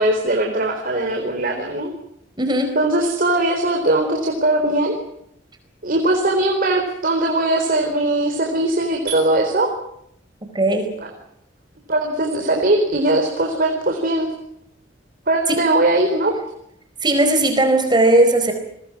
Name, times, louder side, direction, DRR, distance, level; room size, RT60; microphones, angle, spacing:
voice 1, 0.0-1.9 2.7-4.9 5.8-9.7 11.0-11.1 11.9-14.3 15.3-16.3, right 2 dB, 50° right, 3 dB, 4.2 m, -20 dB
voice 2, 2.4-2.8 10.5-10.9 15.5-15.6 17.0-18.5, right 1 dB, 25° right, 6 dB, 4.5 m, -17 dB
29.5 x 22.5 x 6.1 m, 0.77 s
head